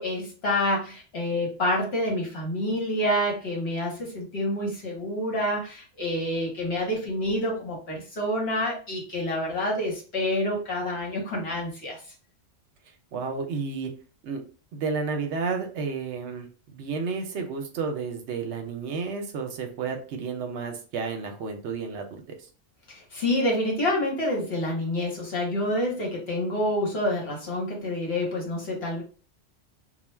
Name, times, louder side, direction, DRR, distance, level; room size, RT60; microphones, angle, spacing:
voice 1, 0.0-12.0 23.1-29.0, left 1 dB, 60° left, -2 dB, 1.1 m, -28 dB
voice 2, 13.1-13.9 14.2-14.4 14.7-22.2, right 5 dB, 70° right, 4 dB, 0.8 m, -31 dB
2.3 x 2.2 x 3.1 m, 0.38 s
omnidirectional pair, 1.2 m